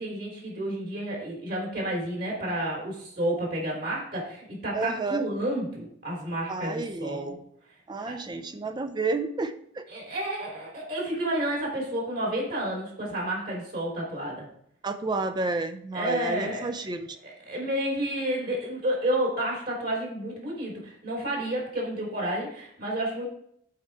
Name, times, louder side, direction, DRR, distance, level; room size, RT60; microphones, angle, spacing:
voice 1, 0.0-7.3 8.1-8.2 9.9-14.5 15.9-16.7 17.2-23.2, right 1 dB, 50° right, -2 dB, 3.2 m, -30 dB
voice 2, 4.7-5.2 6.5-7.4 7.9-9.8 14.8-17.2, right 3 dB, 20° right, 9 dB, 0.4 m, -31 dB
8.5 x 4.3 x 4.6 m, 0.68 s
head